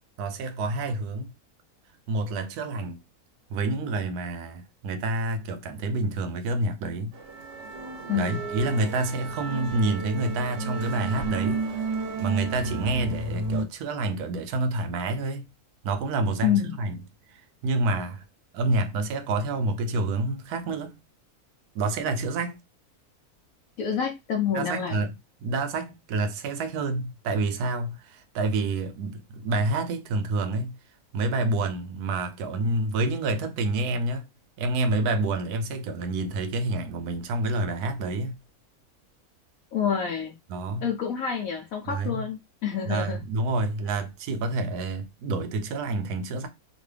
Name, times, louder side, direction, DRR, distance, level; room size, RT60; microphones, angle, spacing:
voice 1, 0.2-1.3 2.1-3.0 3.5-7.1 8.1-11.6 12.2-15.5 15.8-17.0 17.3-18.2 18.5-21.0 21.7-22.6 24.5-25.1 25.4-30.8 31.1-34.3 34.6-38.4 40.5-40.9 41.9-42.2 42.8-46.5, right 2 dB, 85° right, 1.2 m, -28 dB
sound 1, 7.1-13.6, right 3 dB, 55° right, 0.9 m, -32 dB
voice 2, 16.4-16.8 23.8-25.0 39.7-40.3 40.8-43.2, left 8 dB, 70° left, 1.0 m, -27 dB
3.0 x 2.5 x 3.2 m
omnidirectional pair, 1.6 m